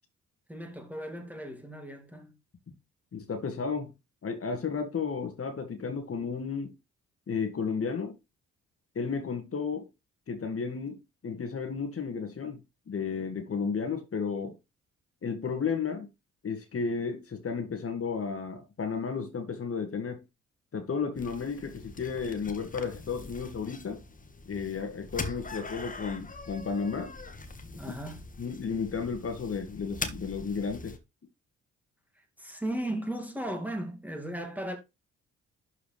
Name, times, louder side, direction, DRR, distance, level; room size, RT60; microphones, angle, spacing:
voice 1, 0.5-2.3 27.7-28.2 32.2-34.8, right 1 dB, 5° right, 2.2 m, -36 dB
voice 2, 3.1-3.9 4.2-6.7 7.3-8.1 9.0-9.9 10.3-12.6 12.9-14.5 15.2-16.1 16.4-20.2 20.7-24.0 24.5-27.1 28.4-31.0, left 5 dB, 35° left, 2.0 m, -33 dB
sound 1, 21.2-31.0, left 3 dB, 20° left, 1.5 m, -42 dB
11.5 x 4.8 x 3.2 m
figure-of-eight pair, 40°, 37 cm